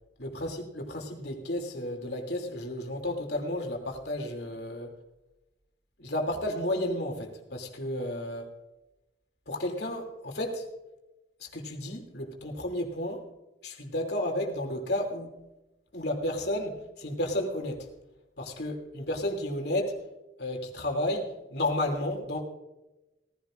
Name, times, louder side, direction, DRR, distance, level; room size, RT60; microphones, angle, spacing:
voice 1, 0.2-4.9 6.0-8.5 9.5-10.6 11.5-13.2 13.6-15.3 15.9-17.9 18.4-20.0 20.4-22.4, left 1 dB, 65° left, 2 dB, 2.9 m, -32 dB
18.5 x 15.5 x 2.5 m, 0.97 s
head